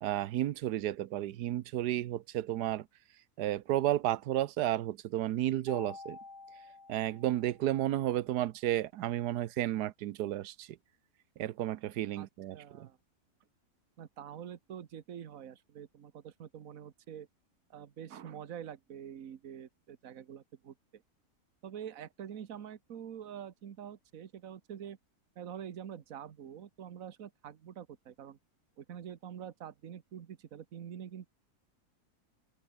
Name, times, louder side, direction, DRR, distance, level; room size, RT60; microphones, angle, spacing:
voice 1, 0.0-2.8 3.4-6.2 6.9-10.7 11.4-12.9, right 13 dB, 85° right, 1.3 m, -32 dB
Mallet percussion, 5.7-7.9, left 3 dB, 30° left, 2.0 m, -49 dB
voice 2, 12.5-13.0 14.0-17.3 17.7-21.0 21.6-25.0 25.4-28.4 28.8-31.3, right 9 dB, 60° right, 1.6 m, -46 dB
open air
omnidirectional pair, 1.7 m